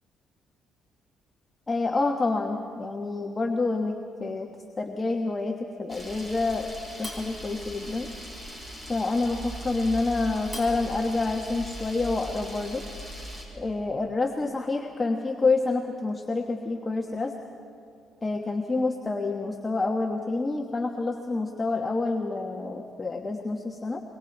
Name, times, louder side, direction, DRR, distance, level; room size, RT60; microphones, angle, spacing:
voice 1, 1.7-4.5 4.8-6.7 7.0-8.1 8.9-12.8 13.5-17.3 18.2-24.0, left 3 dB, 25° left, 2 dB, 1.3 m, -28 dB
Camera, 5.9-13.4, equal, 20° right, 5.6 m, -39 dB
26.5 x 23.5 x 4.4 m, 2.6 s
cardioid pair, 90°, 0 cm